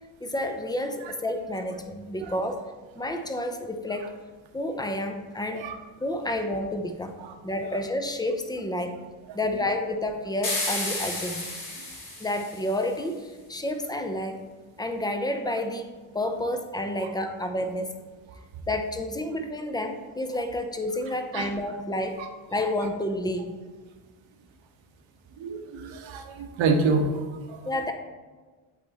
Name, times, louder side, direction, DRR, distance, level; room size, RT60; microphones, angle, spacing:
voice 1, 0.2-2.7 3.0-4.2 4.5-5.7 6.0-7.2 7.4-9.0 9.3-11.5 12.2-14.4 14.8-18.0 18.7-22.2 22.5-23.6 27.7-27.9, left 1 dB, 10° left, 6 dB, 0.4 m, -30 dB
sound 1, 10.4-12.8, left 2 dB, 40° left, 2.1 m, -32 dB
voice 2, 21.0-21.5 22.2-22.3 25.4-27.7, right 3 dB, 70° right, 5 dB, 1.0 m, -28 dB
8.3 x 3.5 x 4.0 m, 1.4 s
cardioid pair, 105°, 49 cm